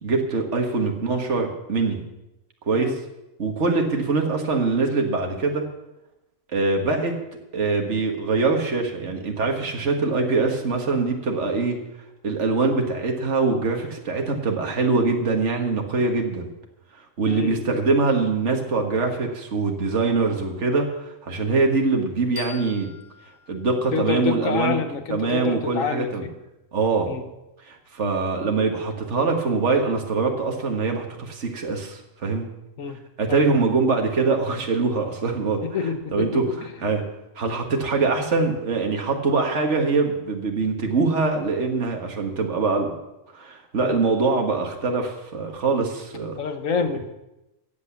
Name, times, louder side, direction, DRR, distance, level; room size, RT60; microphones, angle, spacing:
voice 1, 0.0-2.0 2.7-3.0 3.4-5.6 6.5-7.1 7.5-11.8 12.2-16.5 17.2-22.9 23.5-24.8 25.1-26.3 26.7-27.1 27.7-32.5 33.2-35.6 36.1-36.5 36.8-37.0 37.4-42.9 43.3-46.4, right 3 dB, 55° right, 3 dB, 2.0 m, -23 dB
voice 2, 17.3-17.6 23.9-26.3 27.1-27.2 32.8-33.0 33.3-33.7 35.6-36.7 43.8-44.0 46.4-47.1, left 5 dB, 70° left, 8 dB, 1.5 m, -27 dB
sound 1, 22.4-25.2, left 7 dB, 10° right, 2.6 m, -44 dB
15.0 x 8.5 x 7.1 m, 0.95 s
omnidirectional pair, 1.4 m